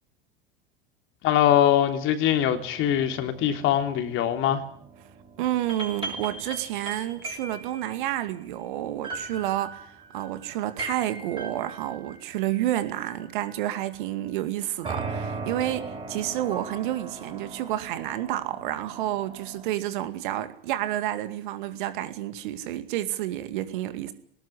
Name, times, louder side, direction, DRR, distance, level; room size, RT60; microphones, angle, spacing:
voice 1, 1.2-4.6, left 11 dB, 40° left, 7 dB, 3.3 m, -22 dB
sound 1, 2.3-13.9 14.8-19.7, right 3 dB, 20° right, 7.6 m, -40 dB
voice 2, 5.4-24.1, right 13 dB, 60° right, 11 dB, 2.3 m, -30 dB
19.5 x 19.0 x 9.9 m, 0.62 s
figure-of-eight pair, 80°, 29 cm